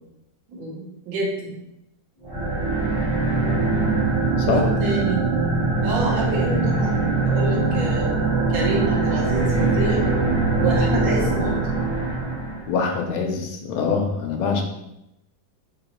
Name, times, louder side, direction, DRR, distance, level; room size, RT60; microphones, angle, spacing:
voice 1, 0.5-1.6 4.4-5.2 5.8-8.1 8.5-10.0 10.6-11.6, right 2 dB, 70° right, -3 dB, 1.6 m, -28 dB
sound 1, 2.2-12.7, right 3 dB, 5° right, 0.6 m, -22 dB
voice 2, 4.4-4.7 12.7-14.6, left 5 dB, 85° left, 3 dB, 1.4 m, -24 dB
3.8 x 2.9 x 2.9 m, 0.87 s
omnidirectional pair, 2.2 m